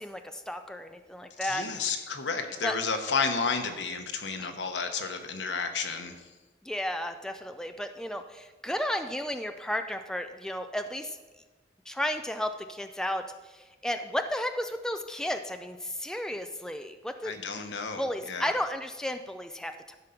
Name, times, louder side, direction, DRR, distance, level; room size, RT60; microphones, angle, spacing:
voice 1, 0.0-1.9 2.6-2.8 4.4-4.5 6.6-11.2 11.9-17.4 18.0-20.0, left 1 dB, 5° left, 7 dB, 0.4 m, -33 dB
voice 2, 1.4-6.2 17.2-18.5, left 5 dB, 85° left, 6 dB, 1.1 m, -31 dB
12.5 x 5.3 x 5.8 m, 1.2 s
head